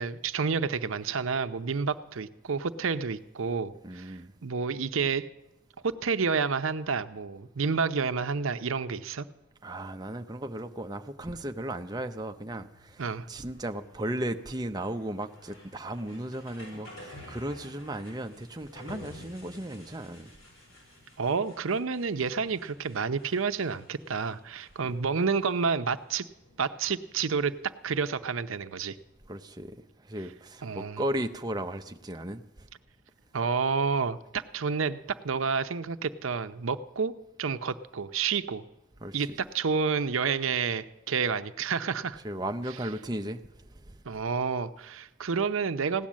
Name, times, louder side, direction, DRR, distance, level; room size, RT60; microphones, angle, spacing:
voice 1, 0.0-5.3 5.8-9.3 13.0-13.3 21.2-26.3 26.6-27.5 27.8-29.0 30.6-31.0 33.3-35.0 35.2-37.1 37.4-38.6 39.1-39.3 39.5-42.2 44.1-46.1, right 5 dB, 80° right, 0.6 m, -29 dB
voice 2, 3.8-4.3 9.6-20.3 24.9-25.0 29.3-32.7 39.0-39.4 42.2-44.0, right 1 dB, 20° right, 0.6 m, -36 dB
sound 1, 12.0-29.1, left 1 dB, 90° left, 7.0 m, -53 dB
16.5 x 10.5 x 7.4 m
head